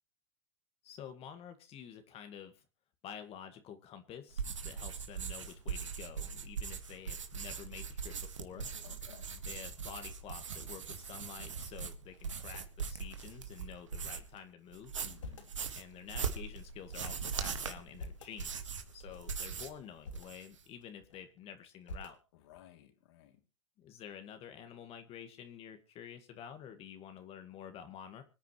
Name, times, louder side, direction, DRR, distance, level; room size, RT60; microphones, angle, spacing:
voice 1, 0.8-2.6 3.0-8.7 9.5-14.9 15.7-22.2 23.8-28.2, left 8 dB, 40° left, 1.9 m, -49 dB
sound 1, 4.3-14.4 14.7-19.8 20.1-20.6, right 6 dB, 85° right, 1.8 m, -41 dB
sound 2, 8.0-11.5 11.7-11.8 12.1-12.7 13.4-14.4 14.9-15.6 16.2-17.1 17.7-18.4 18.9-19.4 19.8-20.3 20.8-21.4 21.8-22.6, left 2 dB, 80° left, 3.1 m, -52 dB
voice 2, 8.8-9.3 15.0-15.5 22.3-23.4, left 13 dB, 60° left, 2.9 m, -57 dB
25.5 x 9.4 x 3.2 m
hypercardioid pair, 95°, 16 cm